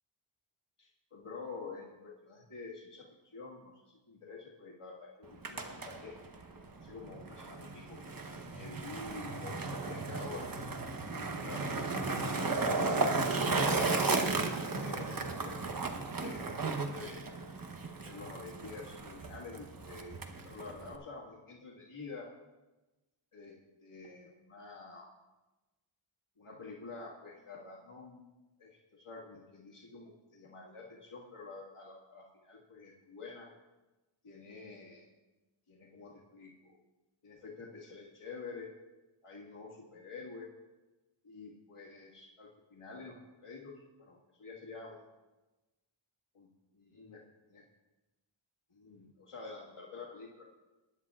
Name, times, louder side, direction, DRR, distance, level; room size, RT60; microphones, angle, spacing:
voice 1, 0.8-6.2 6.7-8.0 8.5-10.7 11.1-11.8 12.0-14.2 14.7-17.2 18.0-20.2 20.4-22.3 23.3-23.6 23.8-25.1 26.4-28.2 28.6-33.5 34.2-35.0 35.7-36.8 37.2-38.7 39.2-40.5 41.2-43.2 43.4-45.1 46.3-47.2 47.5-47.6 48.7-50.4, left 4 dB, 85° left, -4 dB, 2.0 m, -48 dB
Skateboard, 5.2-21.0, right 3 dB, 45° right, 1.0 m, -35 dB
20.5 x 10.5 x 2.4 m, 1.1 s
wide cardioid pair, 70°, 49 cm